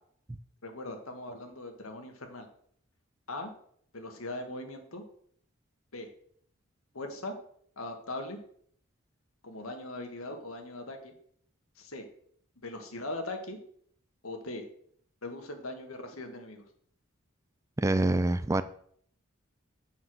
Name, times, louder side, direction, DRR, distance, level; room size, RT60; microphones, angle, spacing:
voice 1, 0.6-2.5 3.3-3.5 3.9-5.0 5.9-6.1 6.9-7.4 7.8-8.4 9.4-11.1 11.8-12.1 12.6-13.6 14.2-14.7 15.2-16.6, left 2 dB, 90° left, 5 dB, 1.6 m, -40 dB
voice 2, 17.8-18.6, right 2 dB, 15° right, 13 dB, 0.3 m, -25 dB
7.3 x 5.9 x 6.3 m, 0.63 s
head